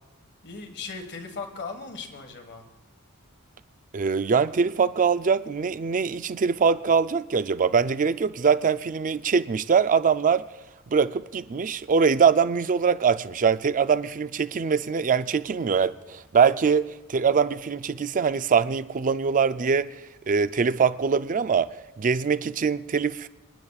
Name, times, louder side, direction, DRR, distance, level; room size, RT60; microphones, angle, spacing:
voice 1, 0.4-2.6, left 4 dB, 50° left, 1.6 m, -37 dB
voice 2, 3.9-10.4 10.9-21.7 22.0-23.3, right 6 dB, 35° right, 0.4 m, -23 dB
27.0 x 10.5 x 2.4 m
head